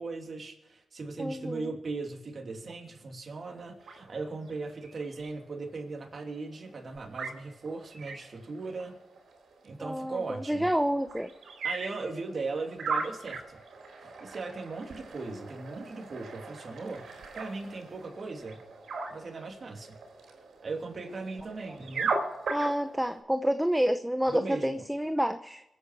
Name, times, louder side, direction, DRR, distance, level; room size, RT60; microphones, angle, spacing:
voice 1, 0.0-9.0 9.6-10.7 11.6-13.6 14.0-17.0 17.3-18.6 19.1-20.0 20.6-22.1 24.3-24.8, right 3 dB, 55° right, 2 dB, 2.8 m, -38 dB
voice 2, 1.2-1.7 9.8-11.3 22.5-25.6, equal, 5° right, 9 dB, 0.8 m, -29 dB
sound 1, 3.3-23.2, right 4 dB, 85° right, 3.7 m, -40 dB
25.5 x 8.7 x 4.8 m, 0.93 s
cardioid pair, 80°, 0 cm